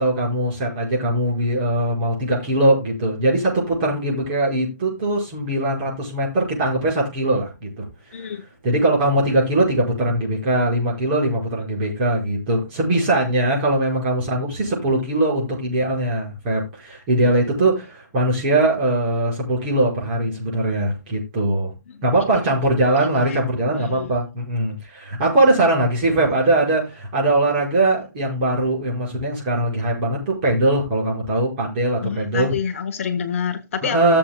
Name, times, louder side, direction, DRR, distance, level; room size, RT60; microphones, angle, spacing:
voice 1, 0.0-8.3 8.6-21.7 22.0-32.5 33.9-34.2, right 1 dB, 30° right, 5.4 m, -21 dB
voice 2, 8.1-8.4 17.2-17.4 21.9-22.0 23.3-23.4 23.7-24.1 32.0-34.0, left 7 dB, 45° left, 1.0 m, -28 dB
17.5 x 7.3 x 2.3 m
hypercardioid pair, 160°, 10 cm